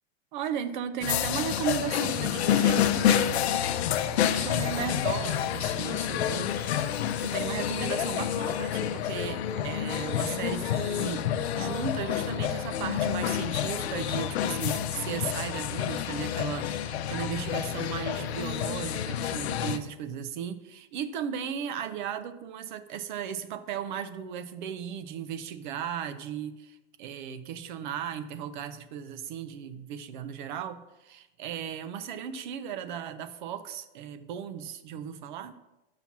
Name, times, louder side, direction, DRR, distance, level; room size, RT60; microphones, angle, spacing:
voice 1, 0.3-3.5 3.9-35.6, right 8 dB, 50° right, 12 dB, 0.6 m, -36 dB
sound 1, 1.0-19.8, left 10 dB, 85° left, 0.7 m, -28 dB
5.8 x 5.8 x 5.9 m, 1.0 s
supercardioid pair, 160°, 31 cm